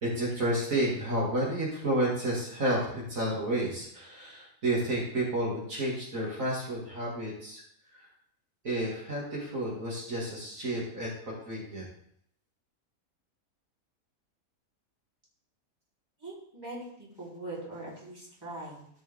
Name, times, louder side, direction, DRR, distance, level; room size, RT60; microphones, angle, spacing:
voice 1, 0.0-7.6 7.9-8.0 8.6-11.9, right 1 dB, 65° right, -5 dB, 2.9 m, -31 dB
voice 2, 16.2-18.9, right 2 dB, 15° right, -8 dB, 3.7 m, -42 dB
13.5 x 5.4 x 3.7 m, 0.70 s
omnidirectional pair, 1.6 m